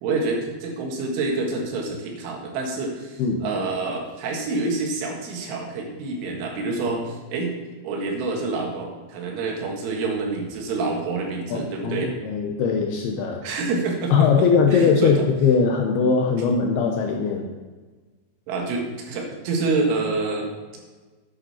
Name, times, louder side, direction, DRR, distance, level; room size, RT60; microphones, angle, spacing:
voice 1, 0.0-7.5 7.8-12.2 13.4-15.2 18.5-20.5, right 3 dB, 90° right, 0 dB, 4.2 m, -27 dB
voice 2, 11.5-13.4 14.1-17.5, left 5 dB, 80° left, 2 dB, 2.4 m, -20 dB
11.0 x 8.8 x 4.3 m, 1.3 s
omnidirectional pair, 5.4 m